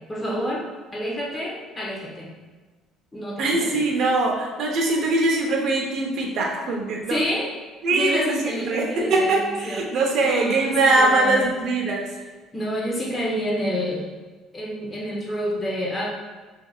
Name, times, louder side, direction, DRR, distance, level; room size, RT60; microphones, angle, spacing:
voice 1, 0.1-0.6 0.9-2.3 3.1-3.8 7.1-7.5 7.9-9.8 10.2-11.5 12.5-14.0 14.5-16.0, equal, 15° left, -4 dB, 0.8 m, -28 dB
voice 2, 3.4-7.2 7.8-12.1, right 2 dB, 55° right, 0 dB, 0.7 m, -22 dB
5.6 x 2.7 x 2.3 m, 1.3 s
cardioid pair, 135°, 0 cm